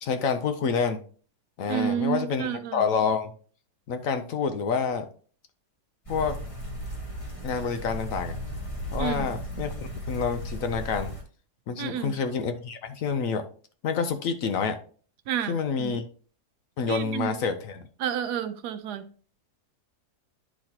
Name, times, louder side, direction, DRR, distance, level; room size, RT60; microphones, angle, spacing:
voice 1, 0.0-1.0 1.6-3.3 3.9-5.1 6.1-6.4 7.4-8.4 8.9-9.7 10.1-11.1 11.7-13.4 13.8-14.8 15.4-16.0 16.8-17.8, left 6 dB, 65° left, 1.0 m, -28 dB
voice 2, 1.7-2.8 9.0-9.3 11.8-12.1 15.3-15.9 16.9-17.4 18.0-19.0, right 9 dB, 80° right, 1.2 m, -30 dB
sound 1, 6.0-11.2, equal, 20° left, 1.3 m, -35 dB
11.0 x 4.1 x 2.8 m
omnidirectional pair, 1.7 m